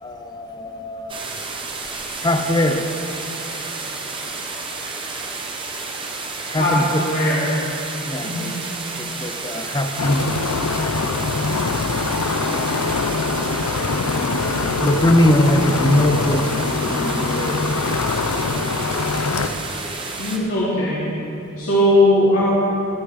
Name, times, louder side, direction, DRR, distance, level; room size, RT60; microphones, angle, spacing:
voice 1, 0.0-1.2 2.2-2.9 6.5-7.0 8.1-8.6 9.0-10.4 14.8-17.6, left 1 dB, 20° left, 6 dB, 0.6 m, -21 dB
sound 1, 1.1-20.4, right 3 dB, 25° right, 1.1 m, -31 dB
voice 2, 7.0-7.4 8.2-8.5 20.2-21.0 21.6-22.4, left 1 dB, 65° left, -10 dB, 2.7 m, -18 dB
sound 2, 10.0-19.5, left 4 dB, 85° left, 0.7 m, -23 dB
21.5 x 8.1 x 4.2 m, 2.8 s
head